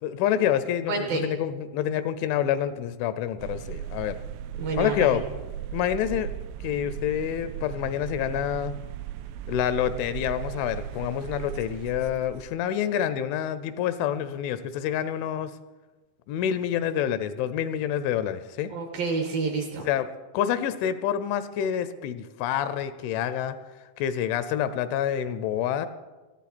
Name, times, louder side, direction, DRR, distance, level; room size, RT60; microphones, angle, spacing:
voice 1, 0.0-4.2 4.8-5.2 5.7-6.3 6.6-8.8 9.5-15.5 16.3-18.7 19.9-20.1 20.3-23.6 24.0-25.9, left 10 dB, 85° left, 13 dB, 3.0 m, -27 dB
voice 2, 0.9-1.3 4.6-5.2 18.7-19.9, right 4 dB, 65° right, 3 dB, 2.5 m, -29 dB
sound 1, 3.4-12.5, right 10 dB, 90° right, 3.1 m, -37 dB
20.0 x 14.0 x 4.2 m, 1.3 s
omnidirectional pair, 5.5 m